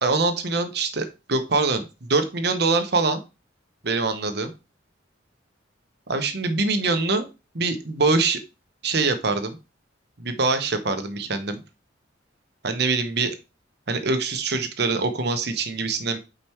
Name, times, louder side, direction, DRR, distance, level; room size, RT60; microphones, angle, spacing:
voice 1, 0.0-3.2 3.8-4.5 6.1-7.2 7.5-8.4 8.8-9.6 10.2-11.6 12.6-13.3 13.9-16.2, right 3 dB, 60° right, 8 dB, 0.9 m, -24 dB
5.2 x 4.3 x 4.5 m, 0.28 s
head